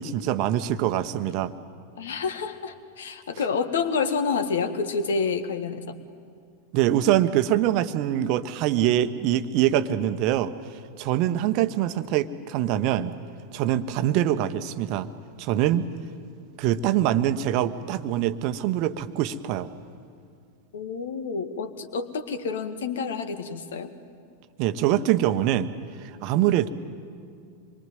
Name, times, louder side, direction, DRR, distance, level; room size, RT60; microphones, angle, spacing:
voice 1, 0.0-1.5 6.7-10.5 11.0-13.1 13.5-15.1 15.4-15.9 16.6-19.7 24.6-25.7 26.0-26.7, right 12 dB, 40° right, 11 dB, 1.1 m, -24 dB
voice 2, 2.0-5.9 20.7-23.9, left 5 dB, 60° left, 10 dB, 1.7 m, -28 dB
26.5 x 23.0 x 9.4 m, 2.2 s
figure-of-eight pair, 90°, 0 cm